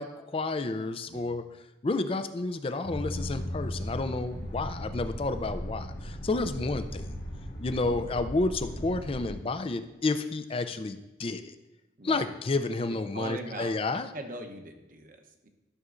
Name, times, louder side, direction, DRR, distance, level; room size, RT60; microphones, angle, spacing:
voice 1, 0.0-1.4 1.8-7.1 7.6-11.5 12.0-14.1, left 3 dB, 30° left, 10 dB, 0.4 m, -30 dB
sound 1, 2.8-9.3, equal, 55° left, 1.5 m, -37 dB
voice 2, 12.9-13.8 14.0-15.5, right 2 dB, 45° right, 5 dB, 0.8 m, -41 dB
12.5 x 6.7 x 2.5 m, 1.0 s
head